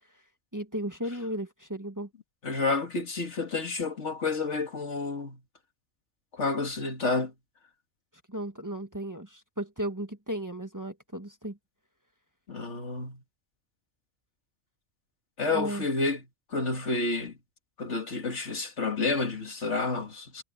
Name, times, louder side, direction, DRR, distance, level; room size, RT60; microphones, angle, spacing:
voice 1, 0.5-2.1 8.3-11.6 15.5-15.8, right 1 dB, 15° right, 1.5 m, -35 dB
voice 2, 2.4-5.4 6.3-7.3 12.5-13.2 15.4-16.2 16.5-17.3 17.8-20.4, left 3 dB, 70° left, 2.5 m, -30 dB
omnidirectional pair, 1.2 m